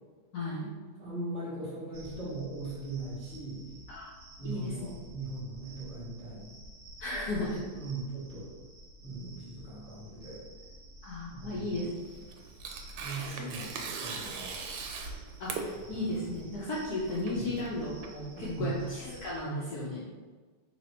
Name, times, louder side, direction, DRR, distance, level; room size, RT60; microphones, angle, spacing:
voice 1, 0.3-0.7 3.9-4.1 4.4-4.9 7.0-7.6 11.0-12.0 13.2-13.4 15.4-20.0, left 1 dB, 70° left, -6 dB, 0.9 m, -35 dB
voice 2, 1.0-3.6 4.4-6.5 7.3-8.5 9.0-10.4 11.3-11.8 13.0-13.7 14.0-14.5 17.4-17.5 18.4-18.7, right 2 dB, 5° left, -10 dB, 1.0 m, -39 dB
sound 1, 1.9-19.4, right 1 dB, 70° right, 1.0 m, -50 dB
Tearing, 12.0-18.7, right 5 dB, 85° right, 1.5 m, -41 dB
3.3 x 2.9 x 4.2 m, 1.4 s
omnidirectional pair, 2.4 m